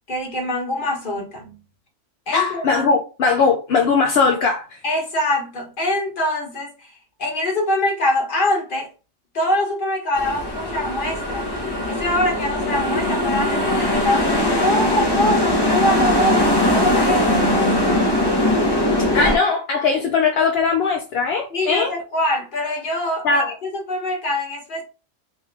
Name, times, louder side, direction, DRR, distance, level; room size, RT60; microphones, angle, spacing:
voice 1, 0.1-1.6 2.3-2.6 4.8-6.9 7.2-8.9 9.3-11.5 11.9-17.5 19.2-19.3 21.5-24.8, left 1 dB, 45° left, 1.3 m, -24 dB
voice 2, 2.3-4.8 19.1-21.9 23.2-23.5, left 4 dB, 60° left, 0.8 m, -19 dB
sound 1, 10.1-19.4, left 1 dB, 25° left, 0.7 m, -20 dB
3.5 x 3.0 x 3.2 m
omnidirectional pair, 1.3 m